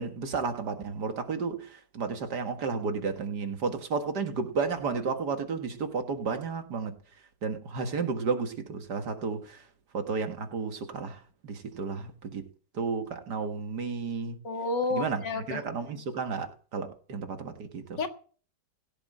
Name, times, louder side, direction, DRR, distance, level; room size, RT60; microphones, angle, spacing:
voice 1, 0.0-7.0 7.4-9.6 9.9-12.4 12.7-14.4 14.9-18.0, right 5 dB, 65° right, 2.2 m, -32 dB
voice 2, 14.4-15.6 18.0-18.1, left 3 dB, 75° left, 2.3 m, -30 dB
16.0 x 7.5 x 7.6 m
omnidirectional pair, 1.9 m